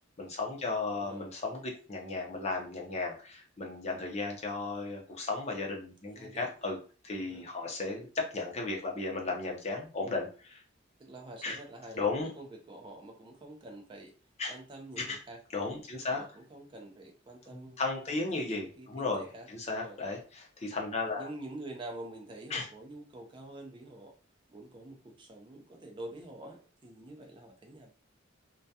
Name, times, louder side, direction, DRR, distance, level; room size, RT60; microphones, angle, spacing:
voice 1, 0.2-6.8 7.0-10.6 11.4-11.6 11.9-12.3 14.4-14.5 15.0-15.2 15.5-16.2 17.5-21.3 22.5-22.7, left 3 dB, 35° left, 0 dB, 0.5 m, -35 dB
voice 2, 0.9-1.2 6.1-6.5 7.2-7.5 11.0-14.1 14.5-15.4 16.0-20.0 21.2-24.1 24.5-27.9, right 1 dB, 25° right, 2 dB, 0.4 m, -47 dB
2.2 x 2.2 x 2.7 m, 0.38 s
head